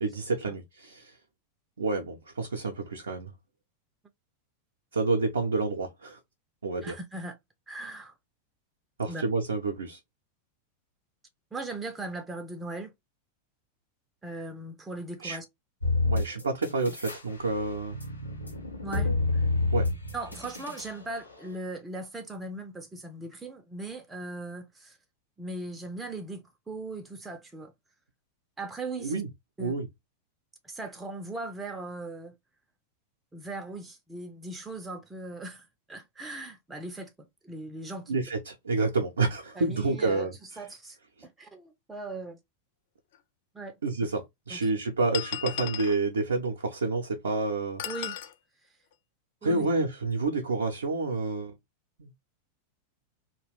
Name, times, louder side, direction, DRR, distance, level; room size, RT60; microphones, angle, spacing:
voice 1, 0.0-1.1 1.8-3.3 4.9-6.2 6.6-6.9 9.0-10.0 15.2-15.4 16.0-18.0 19.7-19.9 29.0-29.3 29.6-29.9 38.1-40.3 43.8-47.8 49.4-51.5 52.0-52.1, right 3 dB, 70° right, 0.5 m, -29 dB
voice 2, 6.8-7.4 7.7-8.1 9.1-9.2 11.5-12.9 14.2-15.4 18.8-19.5 20.1-25.0 25.4-27.7 28.6-29.2 29.6-29.7 30.6-32.3 33.3-38.2 39.5-41.0 41.2-42.4 43.5-43.8 44.5-44.7 47.8-48.2 49.4-49.7, right 2 dB, 10° right, 0.4 m, -39 dB
sound 1, 15.8-17.2 17.6-20.9, left 3 dB, 85° left, 0.7 m, -28 dB
sound 2, 43.1-43.2 44.1-44.2 45.1-46.0 47.8-48.3, left 12 dB, 55° left, 0.3 m, -35 dB
2.3 x 2.1 x 3.0 m
figure-of-eight pair, 90°, 0 cm